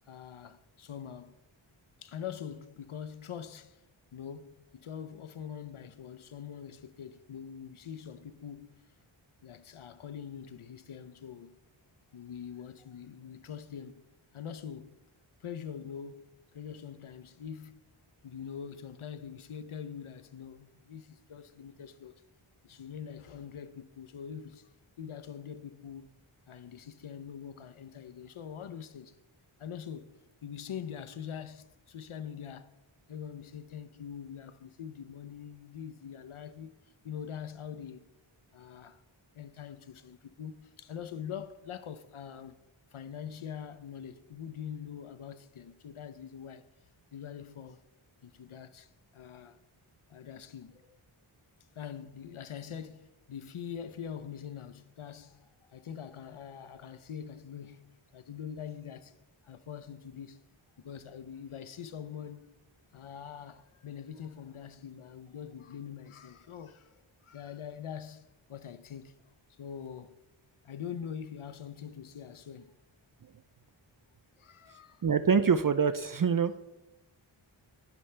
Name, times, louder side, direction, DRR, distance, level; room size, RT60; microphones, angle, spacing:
voice 1, 0.1-1.4 2.0-3.8 4.1-8.9 9.4-11.6 12.1-14.1 14.3-15.0 15.4-17.8 18.2-22.2 22.6-24.7 25.0-26.1 26.5-29.2 29.6-32.8 33.1-36.8 37.0-38.1 38.5-39.0 39.3-42.6 42.9-46.6 47.1-47.8 48.2-49.6 50.1-51.0 51.8-59.1 59.4-60.4 60.8-62.6 62.9-69.2 69.5-70.2 70.6-72.7 74.4-75.1, left 8 dB, 75° left, 0.8 m, -44 dB
voice 2, 75.0-76.6, right 6 dB, 40° right, 0.5 m, -25 dB
20.0 x 6.8 x 3.3 m
wide cardioid pair, 50°, 50 cm